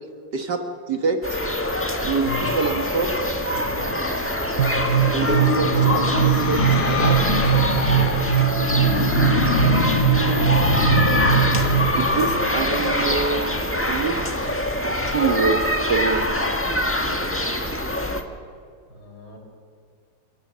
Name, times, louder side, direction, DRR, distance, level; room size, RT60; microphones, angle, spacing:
voice 1, 0.9-1.4 2.0-3.1 5.1-6.6 6.9-7.4 12.0-13.4 13.9-14.5 15.1-15.6 15.9-16.3, right 5 dB, 55° right, 5 dB, 1.8 m, -25 dB
sound 1, 1.2-18.2, left 1 dB, 5° left, 1.2 m, -24 dB
voice 2, 2.2-2.6 3.5-4.0 4.6-5.7 7.7-10.8 16.1-17.5 18.9-19.4, left 2 dB, 50° left, 1 dB, 5.4 m, -38 dB
sound 2, 3.9-13.5, left 5 dB, 80° left, 2.3 m, -26 dB
sound 3, 4.6-12.1, right 10 dB, 85° right, 0.6 m, -22 dB
30.0 x 16.5 x 7.3 m, 2.3 s
omnidirectional pair, 2.3 m